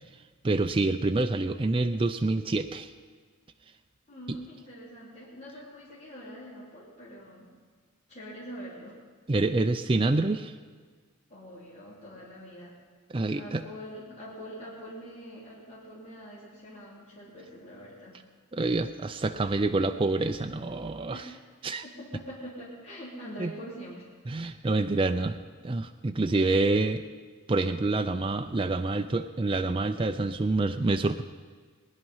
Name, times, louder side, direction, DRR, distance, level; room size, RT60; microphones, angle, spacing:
voice 1, 0.4-2.9 4.3-4.4 9.3-10.5 13.1-13.6 18.5-21.2 21.6-21.8 23.4-23.5 24.3-25.4 25.6-27.0 27.5-31.2, right 2 dB, 25° right, 7 dB, 0.4 m, -27 dB
voice 2, 4.1-7.5 8.1-9.0 11.3-12.7 13.3-18.2 21.1-21.4 21.8-24.1, equal, 35° left, -8 dB, 3.5 m, -44 dB
20.5 x 10.5 x 5.6 m, 1.5 s
head